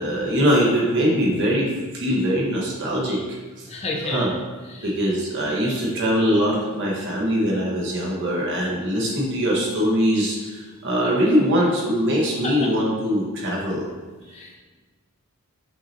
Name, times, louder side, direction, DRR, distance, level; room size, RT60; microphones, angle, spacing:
voice 1, 0.0-3.7 4.0-4.3 4.8-13.9, equal, 55° right, -3 dB, 1.2 m, -22 dB
voice 2, 3.7-4.3 4.7-4.9 5.9-6.0 12.4-12.7 14.3-14.6, left 2 dB, 30° left, -2 dB, 0.6 m, -30 dB
5.8 x 2.8 x 2.9 m, 1.3 s
head